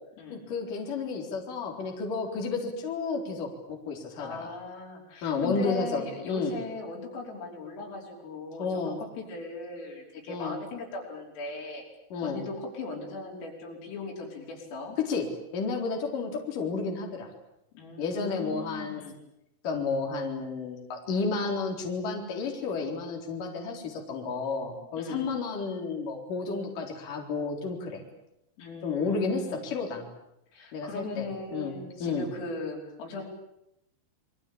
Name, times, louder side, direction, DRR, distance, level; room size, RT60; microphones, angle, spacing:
voice 1, 0.3-4.5 5.2-6.6 8.6-9.0 10.3-10.6 12.1-12.4 15.1-15.2 15.5-17.3 18.0-19.0 19.6-28.0 28.8-30.1 30.7-31.3 31.5-31.7 32.0-32.3, left 4 dB, 45° left, 1 dB, 5.3 m, -31 dB
voice 2, 4.2-11.8 12.2-15.0 17.7-19.2 25.0-25.3 28.6-29.7 30.5-33.2, left 3 dB, 90° left, 0 dB, 8.0 m, -38 dB
29.0 x 23.0 x 8.8 m, 0.82 s
omnidirectional pair, 5.7 m